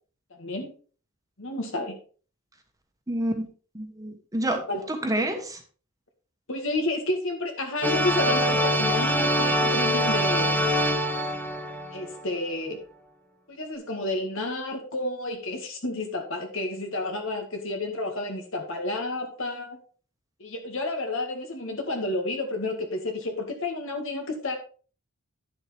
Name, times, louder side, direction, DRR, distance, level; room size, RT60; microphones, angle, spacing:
voice 1, 0.3-0.7 1.4-2.0 4.7-4.9 6.5-10.6 11.9-12.8 13.5-19.8 20.4-24.6, left 2 dB, 65° left, 4 dB, 1.9 m, -30 dB
voice 2, 3.1-3.5 3.7-5.6, right 1 dB, 15° right, 5 dB, 1.3 m, -28 dB
sound 1, 7.8-12.3, equal, 10° left, 1.0 m, -24 dB
10.0 x 7.3 x 3.4 m, 0.40 s
head